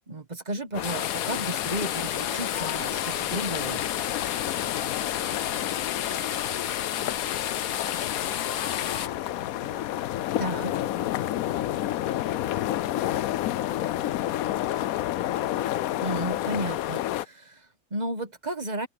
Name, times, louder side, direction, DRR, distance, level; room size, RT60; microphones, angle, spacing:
voice 1, 0.1-3.8 10.4-10.8 16.0-18.9, right 1 dB, 30° right, 1.4 m, -33 dB
sound 1, 0.7-17.2, left 13 dB, 70° left, 1.0 m, -30 dB
sound 2, 0.8-9.1, left 10 dB, 85° left, 1.5 m, -31 dB
voice 2, 4.5-6.5 7.0-10.3 10.9-13.4 13.7-16.0, right 2 dB, 50° right, 8.0 m, -54 dB
omnidirectional pair, 1.7 m